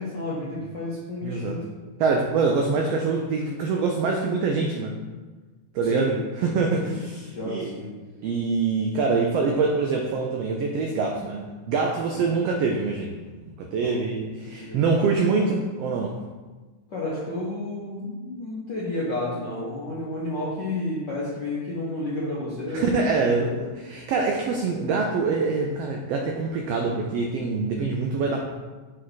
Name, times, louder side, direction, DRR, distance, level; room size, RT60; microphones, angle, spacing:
voice 1, 0.0-1.6 5.8-6.2 6.8-7.0 7.3-7.9 12.1-12.3 13.8-13.9 14.5-14.9 16.9-23.0 23.3-23.6, left 2 dB, 70° left, -8 dB, 1.0 m, -31 dB
voice 2, 1.2-1.6 2.0-5.0 5.7-7.7 8.2-13.1 13.6-16.2 22.7-28.4, right 4 dB, 85° right, 1 dB, 1.4 m, -25 dB
7.5 x 3.3 x 3.9 m, 1.3 s
omnidirectional pair, 3.4 m